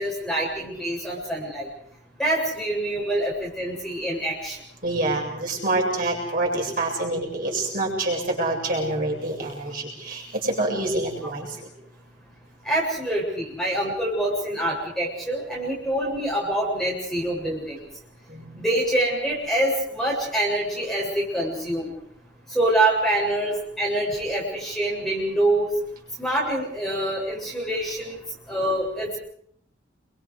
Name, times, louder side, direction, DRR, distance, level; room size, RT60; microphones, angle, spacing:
voice 1, 0.0-1.7 2.2-4.6 12.6-17.8 18.6-21.9 22.5-25.7 26.2-28.2 28.5-29.2, right 1 dB, ahead, -3 dB, 7.6 m, -25 dB
voice 2, 4.8-11.5 18.3-18.7, right 2 dB, 50° right, -1 dB, 7.7 m, -26 dB
29.5 x 24.0 x 5.1 m, 0.69 s
head